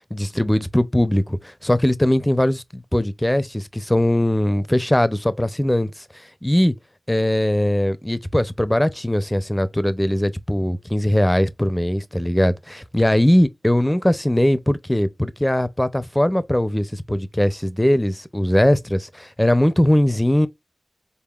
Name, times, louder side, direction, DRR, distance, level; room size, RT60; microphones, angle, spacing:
voice 1, 0.1-6.0 6.4-6.7 7.1-20.5, left 1 dB, 15° left, 0.5 m, -20 dB
4.0 x 3.6 x 2.3 m
wide cardioid pair, 45°, 0 cm